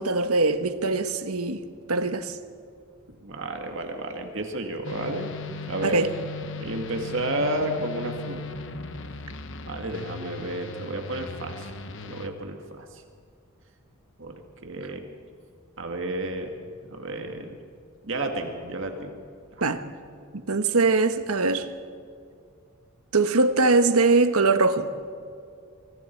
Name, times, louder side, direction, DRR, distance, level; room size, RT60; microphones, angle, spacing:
voice 1, 0.0-1.6 1.9-2.4 5.8-6.1 19.6-19.8 20.5-21.7 23.1-24.9, right 3 dB, 85° right, 1.3 m, -22 dB
voice 2, 3.2-5.3 5.7-6.0 6.6-8.4 9.7-11.7 12.0-13.0 14.2-14.3 14.6-15.0 15.8-17.5 18.0-19.2 19.5-19.6, right 1 dB, 60° right, 2.1 m, -31 dB
sound 1, 4.8-12.3, left 3 dB, 60° left, 1.2 m, -38 dB
25.0 x 23.5 x 4.6 m
head